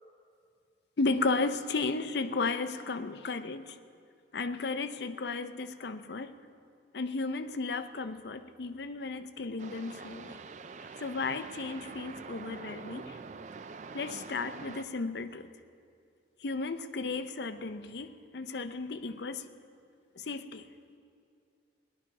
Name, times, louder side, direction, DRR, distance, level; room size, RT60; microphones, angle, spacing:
voice 1, 1.0-3.8 4.3-6.3 6.9-10.4 11.0-13.2 13.9-15.5 16.4-19.5 20.2-20.6, left 3 dB, 60° left, 10 dB, 0.5 m, -34 dB
sound 1, 9.6-14.8, right 4 dB, 40° right, 0.3 m, -45 dB
18.5 x 11.0 x 4.7 m, 2.4 s
head